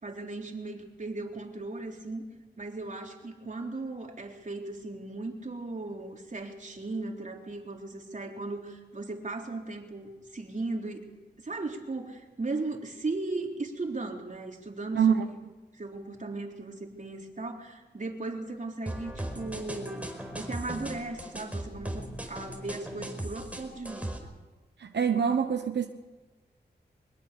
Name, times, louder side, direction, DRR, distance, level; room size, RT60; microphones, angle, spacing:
voice 1, 0.0-2.2 2.6-11.1 11.4-15.3 15.8-20.1 20.3-24.3, right 3 dB, 45° right, 2 dB, 3.9 m, -37 dB
sound 1, 18.9-24.2, right 1 dB, 10° right, 4.7 m, -38 dB
voice 2, 24.8-25.9, right 7 dB, 80° right, 6 dB, 1.1 m, -25 dB
23.0 x 21.5 x 7.0 m, 1.2 s
wide cardioid pair, 75°, 18 cm